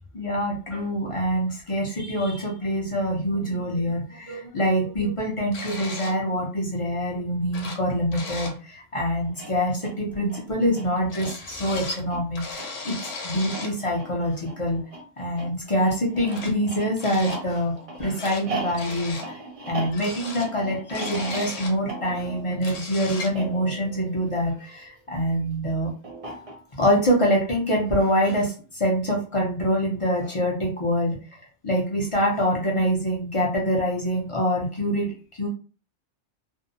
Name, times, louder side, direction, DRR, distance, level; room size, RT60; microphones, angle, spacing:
voice 1, 0.1-14.8 15.2-19.4 19.7-25.9 26.8-31.2 31.6-35.5, equal, 40° left, -2 dB, 0.5 m, -25 dB
sound 1, 5.5-6.2 7.2-7.3 7.5-8.6 11.1-12.0 12.3-13.8 15.2-15.3 16.3-16.5 17.0-17.4 17.8-18.4 18.7-19.3 19.9-21.8 22.2-22.3 22.5-23.4, left 3 dB, 80° left, 1.0 m, -36 dB
sound 2, 9.2-25.0 26.0-26.9, right 3 dB, 35° right, 0.6 m, -39 dB
2.5 x 2.0 x 2.6 m, 0.36 s
omnidirectional pair, 1.2 m